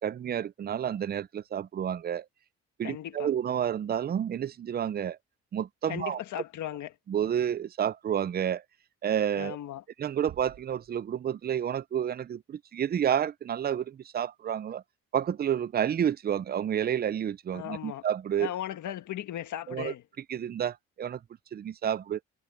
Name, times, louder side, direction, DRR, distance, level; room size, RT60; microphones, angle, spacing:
voice 1, 0.0-2.3 2.8-5.2 5.5-6.2 7.1-8.6 9.0-9.6 10.0-14.8 15.1-18.5 19.7-19.9 20.3-21.2 21.5-22.2, right 9 dB, 30° right, 0.5 m, -30 dB
voice 2, 2.8-3.3 5.9-6.9 9.3-9.8 17.5-18.0 18.4-20.0, left 12 dB, 75° left, 1.7 m, -37 dB
Bass drum, 10.3-11.7, right 12 dB, 75° right, 1.4 m, -52 dB
cardioid pair, 90°, 30 cm